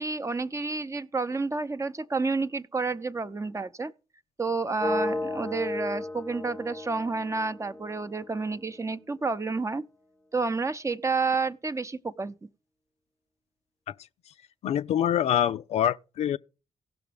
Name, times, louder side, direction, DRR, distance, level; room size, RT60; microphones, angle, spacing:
voice 1, 0.0-3.9 4.4-9.8 10.3-12.3, right 4 dB, 25° right, 0.7 m, -30 dB
sound 1, 4.8-8.7, left 2 dB, 5° left, 0.7 m, -34 dB
voice 2, 14.6-16.4, left 10 dB, 65° left, 0.4 m, -25 dB
17.0 x 6.0 x 3.4 m
hypercardioid pair, 40°, 12 cm